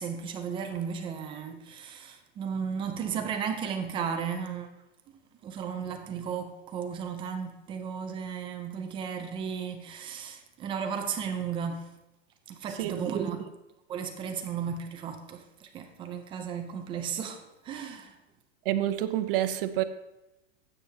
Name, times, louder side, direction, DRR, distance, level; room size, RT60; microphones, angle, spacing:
voice 1, 0.0-4.7 5.4-11.9 12.5-13.4 13.9-18.2, right 7 dB, 15° right, 0.4 m, -34 dB
voice 2, 18.6-19.8, right 13 dB, 50° right, 0.7 m, -28 dB
12.0 x 8.2 x 2.8 m
supercardioid pair, 155°, 35 cm